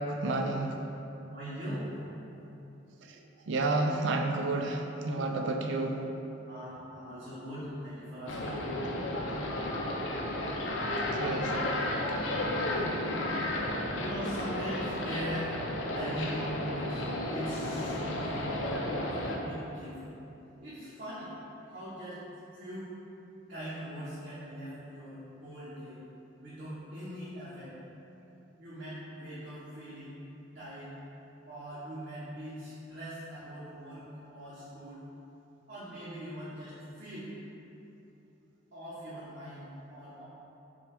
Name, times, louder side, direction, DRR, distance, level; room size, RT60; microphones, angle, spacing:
voice 1, 0.0-0.8 3.5-6.0 11.1-11.6 12.2-12.3, right 2 dB, 70° right, 3 dB, 0.4 m, -30 dB
voice 2, 1.3-1.9 6.5-8.6 14.0-15.5 15.9-20.0 20.6-21.3 21.7-22.2 22.5-22.9 23.5-26.0 26.4-27.7 28.6-30.1 30.5-31.0 31.5-35.0 35.7-37.3 38.7-40.2, equal, 50° right, -12 dB, 0.9 m, -41 dB
sound 1, 8.3-19.4, left 1 dB, 85° left, 0.5 m, -33 dB
5.8 x 2.3 x 3.3 m, 2.9 s
head